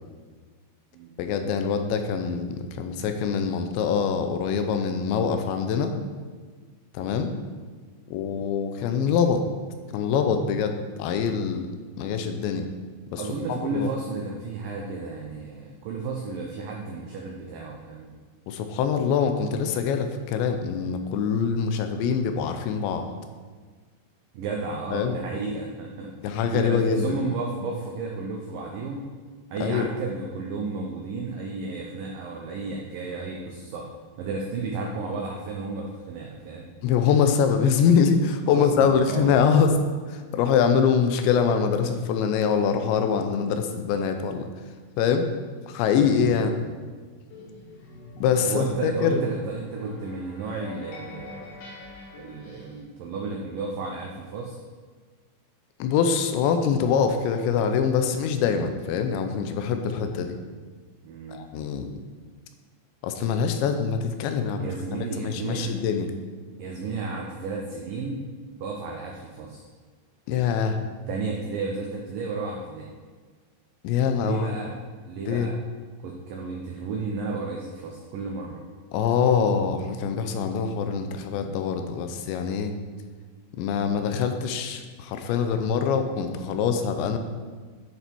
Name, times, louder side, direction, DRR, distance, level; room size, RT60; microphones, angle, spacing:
voice 1, 1.2-5.9 6.9-7.3 8.1-9.4 9.9-11.7 12.0-12.7 13.1-13.2 13.5-13.9 18.5-23.1 24.9-25.2 26.2-27.2 29.6-29.9 36.8-39.7 40.1-44.5 45.0-45.3 45.7-46.6 48.2-49.2 55.8-60.4 61.3-62.0 63.0-64.7 65.2-66.1 70.3-70.8 73.8-74.5 75.3-75.5 78.9-82.7 83.5-87.2, left 6 dB, 85° left, 7 dB, 3.0 m, -24 dB
voice 2, 13.2-18.1 24.3-29.1 29.5-33.9 34.2-36.7 38.5-39.6 46.1-46.8 48.4-51.7 52.2-54.6 61.0-61.4 64.6-65.7 66.6-68.3 68.6-69.6 71.1-72.9 74.2-74.7 75.1-75.5 76.0-78.6, right 3 dB, 85° right, 0 dB, 1.9 m, -33 dB
sound 1, 47.3-52.8, left 3 dB, 60° left, 3.6 m, -44 dB
10.5 x 6.9 x 4.5 m, 1.5 s
omnidirectional pair, 5.1 m